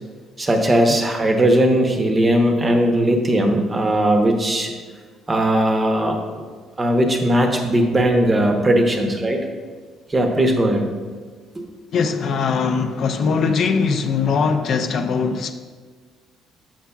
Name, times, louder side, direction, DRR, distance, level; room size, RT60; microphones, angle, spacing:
voice 1, 0.4-4.7 5.3-6.2 6.8-9.4 10.1-10.8, right 1 dB, 20° right, 3 dB, 0.7 m, -18 dB
voice 2, 11.9-15.5, left 5 dB, 55° left, 6 dB, 0.4 m, -21 dB
6.9 x 5.9 x 2.3 m, 1.5 s
cardioid pair, 135°, 0 cm